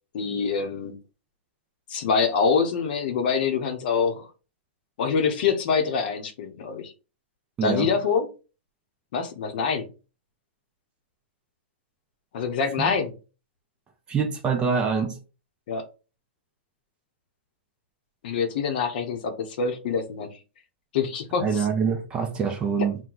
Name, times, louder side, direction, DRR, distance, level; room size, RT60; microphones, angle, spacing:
voice 1, 0.1-1.0 1.9-4.3 5.0-6.9 7.6-8.3 9.1-9.9 12.3-13.1 15.7-15.8 18.2-20.4 20.9-21.7, left 5 dB, 50° left, 0.8 m, -25 dB
voice 2, 7.6-7.9 12.8-12.9 14.1-15.2 21.4-23.0, right 6 dB, 15° right, 0.5 m, -25 dB
4.5 x 2.2 x 3.9 m
hypercardioid pair, 160°, 7 cm